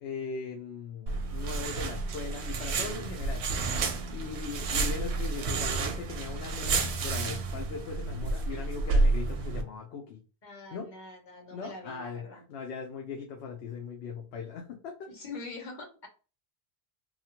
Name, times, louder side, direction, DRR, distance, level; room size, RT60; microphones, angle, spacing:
voice 1, 0.0-3.8 4.1-10.2 10.7-10.9 11.5-12.2 12.5-15.1, left 5 dB, 85° left, 2 dB, 0.8 m, -39 dB
sound 1, 1.1-9.6, right 3 dB, 90° right, 0.8 m, -30 dB
voice 2, 10.4-12.4 15.1-16.1, left 3 dB, 50° left, 0 dB, 0.9 m, -44 dB
2.8 x 2.3 x 2.8 m, 0.35 s
omnidirectional pair, 1.1 m